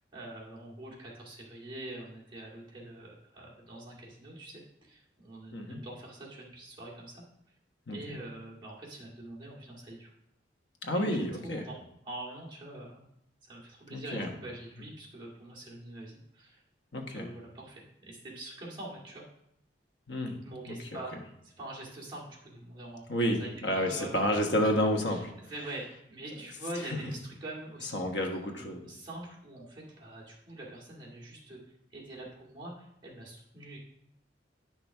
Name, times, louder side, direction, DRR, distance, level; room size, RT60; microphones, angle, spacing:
voice 1, 0.0-7.2 7.9-10.1 11.1-11.8 12.0-13.0 13.4-16.6 17.0-19.2 20.4-21.1 21.4-23.1 23.4-24.1 24.6-24.7 25.1-25.2 25.5-28.0 28.3-31.6 31.9-33.8, right 1 dB, 25° right, -5 dB, 2.2 m, -44 dB
voice 2, 7.9-8.2 10.8-11.7 13.9-14.3 16.9-17.3 20.1-20.4 20.7-21.0 23.1-25.3 26.8-27.0 27.9-28.9, equal, 75° left, 3 dB, 1.3 m, -30 dB
9.7 x 6.0 x 3.5 m, 0.77 s
head